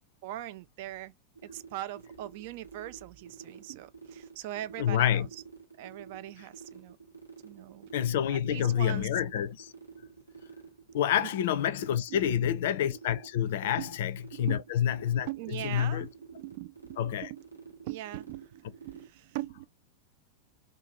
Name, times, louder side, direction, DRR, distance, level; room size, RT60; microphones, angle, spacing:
voice 1, 0.2-1.1 1.4-5.3 5.8-7.0 7.4-7.9 8.3-9.1 11.2-11.3 12.1-12.5 13.8-13.9 14.3-14.7 15.3-17.4 17.8-19.7, right 15 dB, 50° right, 0.3 m, -41 dB
sound 1, 1.4-19.1, right 5 dB, 85° right, 0.8 m, -49 dB
voice 2, 4.8-5.3 7.9-9.7 10.9-15.3 15.6-16.1 17.0-17.3, left 10 dB, 55° left, 0.4 m, -28 dB
2.6 x 2.2 x 3.0 m
figure-of-eight pair, 90°, 0 cm